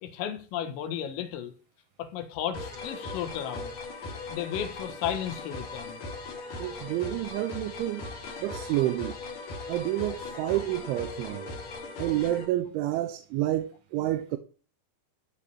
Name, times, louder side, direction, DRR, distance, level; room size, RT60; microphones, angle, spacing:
voice 1, 0.0-1.5 2.0-6.0, left 10 dB, 85° left, 4.1 m, -34 dB
sound 1, 2.5-12.4, left 3 dB, 50° left, 3.4 m, -39 dB
voice 2, 6.6-8.0 8.4-9.1 9.7-11.5 12.0-14.4, right 14 dB, 80° right, 3.2 m, -29 dB
14.5 x 5.3 x 8.5 m
omnidirectional pair, 5.8 m